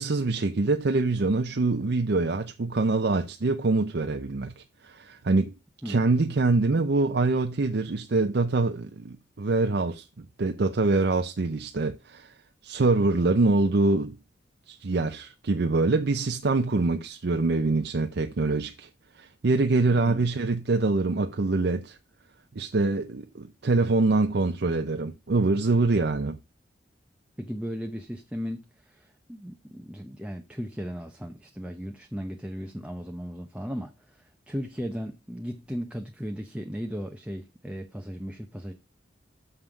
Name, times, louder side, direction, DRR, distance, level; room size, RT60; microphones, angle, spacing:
voice 1, 0.0-5.5 5.8-12.3 12.6-14.2 14.7-18.9 19.2-22.0 22.5-26.4, right 3 dB, 60° right, 0.6 m, -25 dB
voice 2, 20.0-20.3 27.4-38.7, equal, 5° right, 0.7 m, -36 dB
6.7 x 5.6 x 5.9 m
head